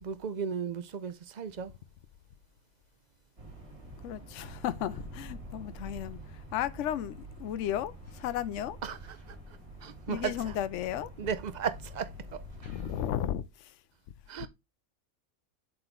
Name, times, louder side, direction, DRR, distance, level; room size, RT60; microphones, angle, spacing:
voice 1, 0.0-1.7 8.8-9.0 9.3-9.4 9.8-10.5 11.2-12.4 14.3-14.5, right 7 dB, 50° right, 0.5 m, -35 dB
sound 1, 3.4-13.1, right 1 dB, 25° right, 2.5 m, -46 dB
voice 2, 4.0-8.8 10.1-11.3 12.6-13.8 14.4-14.5, left 11 dB, 70° left, 0.9 m, -34 dB
7.7 x 3.8 x 4.6 m
omnidirectional pair, 1.4 m